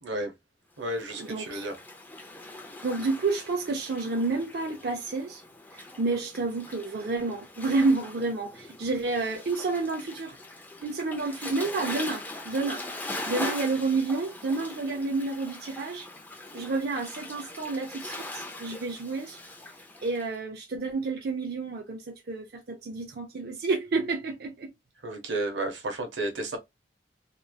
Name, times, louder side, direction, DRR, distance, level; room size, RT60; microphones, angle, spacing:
voice 1, 0.0-0.3 0.8-1.7 25.0-26.6, right 2 dB, 85° right, 0.7 m, -32 dB
Waves surf, 0.8-20.3, left 2 dB, 10° left, 0.4 m, -41 dB
voice 2, 1.2-1.6 2.8-5.4 6.0-10.4 10.8-12.8 13.2-16.1 16.5-19.4 20.0-24.7, right 3 dB, 55° right, 0.4 m, -30 dB
3.0 x 2.2 x 2.2 m
head